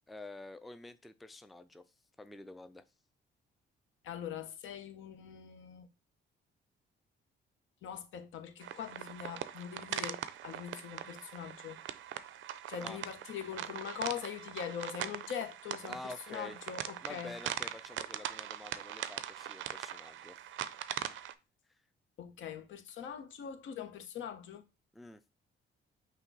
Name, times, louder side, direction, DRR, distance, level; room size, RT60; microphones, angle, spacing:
voice 1, 0.1-1.9 2.2-2.8 12.8-13.0 15.9-16.6 17.0-20.4 21.7-21.8 24.9-25.2, left 2 dB, ahead, 0.3 m, -48 dB
voice 2, 4.0-5.9 7.8-11.8 12.7-17.3 22.2-24.7, left 9 dB, 75° left, 0.8 m, -42 dB
sound 1, 8.6-21.3, right 11 dB, 75° right, 0.4 m, -41 dB
5.7 x 2.3 x 3.9 m
cardioid pair, 90°, 20 cm